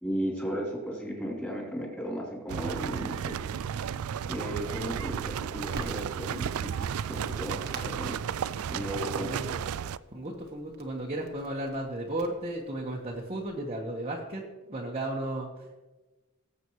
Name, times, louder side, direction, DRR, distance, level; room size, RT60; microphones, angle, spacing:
voice 1, 0.0-3.4 4.3-8.2 8.7-9.3, equal, 10° left, -4 dB, 3.6 m, -35 dB
sound 1, 2.5-10.0, right 8 dB, 75° right, 0.3 m, -33 dB
Crackle, 5.7-13.6, right 2 dB, 50° right, 1.4 m, -48 dB
voice 2, 9.1-9.6 10.1-14.4 14.7-15.7, right 1 dB, 30° right, -3 dB, 1.3 m, -34 dB
18.5 x 8.2 x 3.2 m, 1.2 s
head